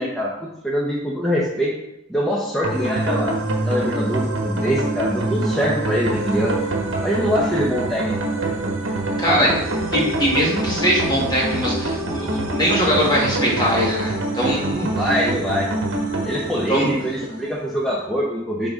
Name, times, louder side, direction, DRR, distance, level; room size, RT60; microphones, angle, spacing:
voice 1, 0.0-1.7 2.1-3.4 3.6-6.6 7.0-8.4 14.7-15.7 16.2-18.7, equal, ahead, -5 dB, 0.7 m, -23 dB
sound 1, 2.6-17.7, right 2 dB, 70° right, 1.4 m, -25 dB
voice 2, 9.2-9.6 9.9-15.1 16.7-16.9, equal, 20° left, -5 dB, 2.1 m, -21 dB
9.9 x 3.9 x 3.6 m, 0.87 s
head